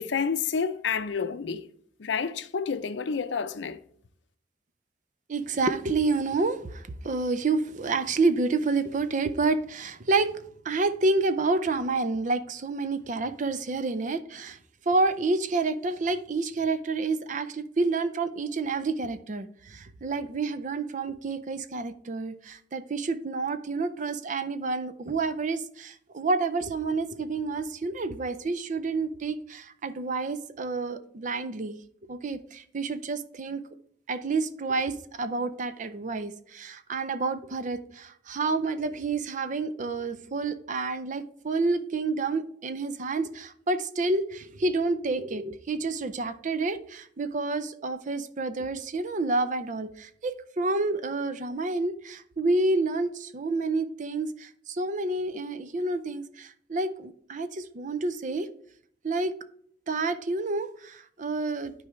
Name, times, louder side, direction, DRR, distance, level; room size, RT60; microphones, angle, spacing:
voice 1, 0.0-1.7 2.0-3.8, left 6 dB, 75° left, 0.6 m, -29 dB
voice 2, 5.3-14.6 14.9-31.8 32.1-33.6 34.1-58.5 59.0-59.3 59.9-61.7, right 3 dB, 45° right, 0.5 m, -29 dB
12.0 x 4.7 x 3.1 m
head